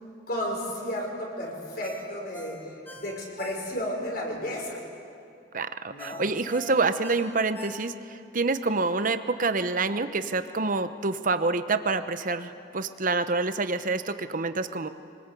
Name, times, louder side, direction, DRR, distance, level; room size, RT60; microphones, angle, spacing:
voice 1, 0.3-4.8 5.9-6.2, left 1 dB, 55° left, -1 dB, 5.4 m, -33 dB
Ringtone, 1.8-4.1 4.4-4.5 6.0-8.2 8.6-8.7, equal, 10° left, 2.7 m, -44 dB
voice 2, 5.5-14.9, right 3 dB, 45° right, 10 dB, 0.9 m, -27 dB
25.0 x 19.5 x 8.4 m, 2.5 s
head